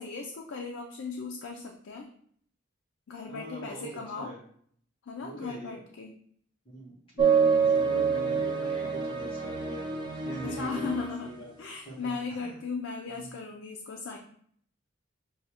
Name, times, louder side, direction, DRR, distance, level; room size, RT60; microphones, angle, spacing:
voice 1, 0.0-2.1 3.1-4.3 5.0-6.1 7.2-7.8 10.4-14.2, left 4 dB, 80° left, 1 dB, 0.4 m, -37 dB
voice 2, 3.3-3.9 4.1-4.4 5.2-5.8 6.6-7.0 7.7-11.5 11.8-12.6, right 2 dB, 25° left, -6 dB, 1.2 m, -42 dB
sound 1, 7.2-11.3, right 6 dB, 25° right, 0.5 m, -27 dB
6.2 x 2.3 x 2.8 m, 0.63 s
head